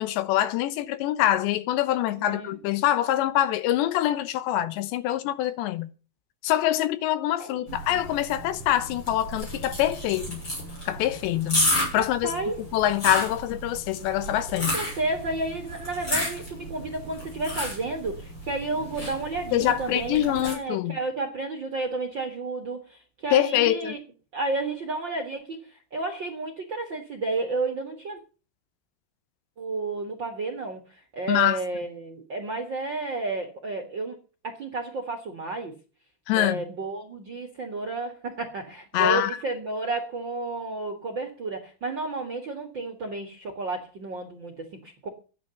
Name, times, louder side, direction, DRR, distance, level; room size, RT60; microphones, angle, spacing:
voice 1, 0.0-5.9 6.4-10.4 10.9-12.3 12.7-14.8 19.5-21.0 23.3-24.0 31.3-31.6 36.3-36.6 38.9-39.3, left 13 dB, 85° left, 3.2 m, -25 dB
voice 2, 2.1-2.6 7.4-7.6 7.9-8.0 11.9-12.6 14.7-24.0 24.3-28.2 29.6-34.2 34.4-35.7 36.3-45.1, right 3 dB, 55° right, 1.3 m, -32 dB
sound 1, 7.7-20.5, equal, 25° left, 6.8 m, -32 dB
13.0 x 9.9 x 7.0 m
omnidirectional pair, 5.0 m